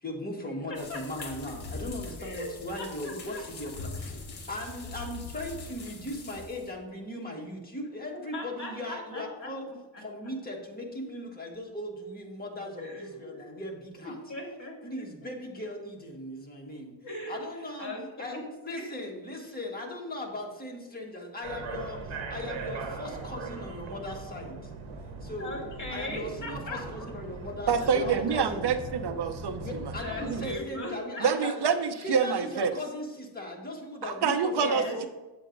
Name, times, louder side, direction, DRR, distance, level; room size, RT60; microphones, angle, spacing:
voice 1, 0.0-4.2 4.5-9.6 10.0-14.2 14.8-16.9 17.3-17.9 18.2-18.4 18.6-24.7 25.2-25.6 25.9-28.7 29.6-31.6 32.0-35.1, left 1 dB, 20° left, -1 dB, 1.5 m, -38 dB
sound 1, 0.7-6.7, left 3 dB, 55° left, 1.4 m, -42 dB
voice 2, 0.7-1.2 2.2-2.5 2.8-3.5 8.1-10.3 12.8-13.4 14.0-15.3 17.0-17.4 17.8-18.4 18.7-19.5 25.4-27.1 30.0-31.7 34.5-35.1, left 1 dB, 40° left, -1 dB, 2.4 m, -39 dB
sound 2, 21.4-30.6, right 3 dB, 80° right, 1.0 m, -40 dB
voice 3, 27.7-29.6 30.3-30.4 31.2-32.7 34.0-35.1, right 6 dB, 60° right, 10 dB, 0.7 m, -27 dB
8.1 x 7.6 x 2.6 m, 1.1 s
cardioid pair, 105°, 47 cm